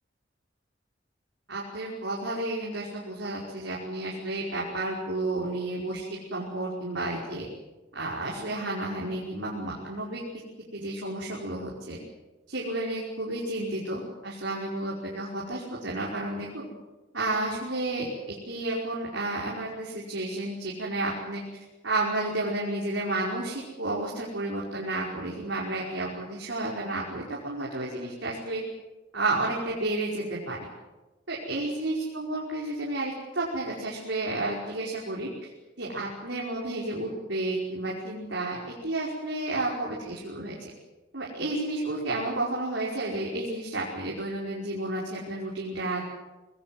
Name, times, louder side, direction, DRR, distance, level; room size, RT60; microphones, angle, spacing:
voice 1, 1.5-7.4 7.9-10.2 10.7-12.0 12.5-16.7 17.1-18.1 18.5-21.4 21.8-28.6 29.1-30.6 31.3-35.5 35.8-40.7 41.1-46.0, right 2 dB, 80° right, -4 dB, 5.3 m, -31 dB
26.0 x 20.0 x 8.0 m, 1.1 s
head